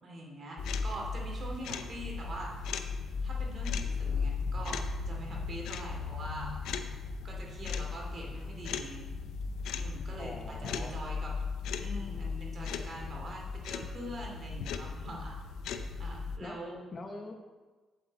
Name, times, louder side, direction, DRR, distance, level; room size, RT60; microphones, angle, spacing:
voice 1, 0.0-2.7 3.2-6.6 7.2-9.1 9.8-11.3 11.8-15.4 16.0-16.8, right 1 dB, 45° right, -1 dB, 2.6 m, -43 dB
sound 1, 0.6-16.4, left 5 dB, 85° left, 0.6 m, -36 dB
voice 2, 10.2-11.0 16.4-16.6 16.9-17.4, left 2 dB, 35° left, 4 dB, 1.0 m, -43 dB
8.4 x 8.2 x 4.1 m, 1.3 s
cardioid pair, 90°, 0 cm